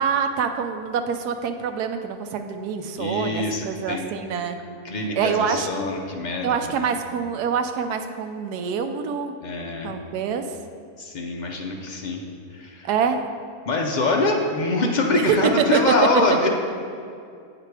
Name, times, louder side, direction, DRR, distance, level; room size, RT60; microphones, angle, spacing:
voice 1, 0.0-4.6 5.2-5.7 6.4-9.3 9.8-10.5 12.8-13.2 15.1-15.8, right 6 dB, 85° right, 7 dB, 1.2 m, -25 dB
voice 2, 3.0-4.0 4.8-6.5 6.8-6.9 9.4-9.9 11.0-12.2 12.5-12.9 13.7-16.5, left 2 dB, 85° left, 0 dB, 0.4 m, -24 dB
8.4 x 4.9 x 4.7 m, 2.3 s
omnidirectional pair, 1.7 m